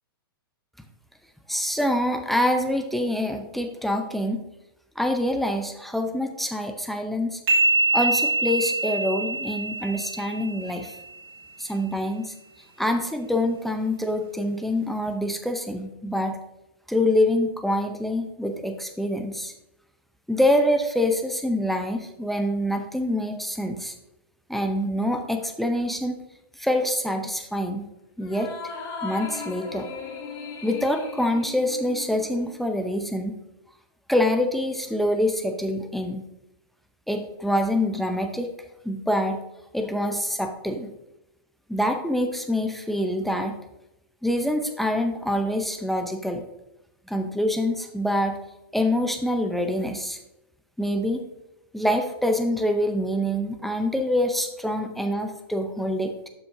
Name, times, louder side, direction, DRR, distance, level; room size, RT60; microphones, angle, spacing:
voice 1, 1.5-4.4 5.0-7.4 7.9-10.9 11.6-12.3 12.8-16.4 16.9-19.5 20.3-23.9 24.5-26.1 26.6-27.9 28.2-28.5 29.0-29.9 30.6-33.4 34.1-36.3 37.1-38.5 38.8-39.4 39.7-40.9 41.7-43.6 44.2-46.4 47.1-48.4 48.7-50.2 50.8-51.2 51.7-56.1, left 1 dB, ahead, 5 dB, 0.6 m, -25 dB
sound 1, 7.5-11.0, right 2 dB, 75° right, 2.8 m, -24 dB
sound 2, 28.2-33.0, left 4 dB, 35° left, 2.1 m, -38 dB
12.0 x 5.8 x 2.7 m, 0.92 s
hypercardioid pair, 135°, 13 cm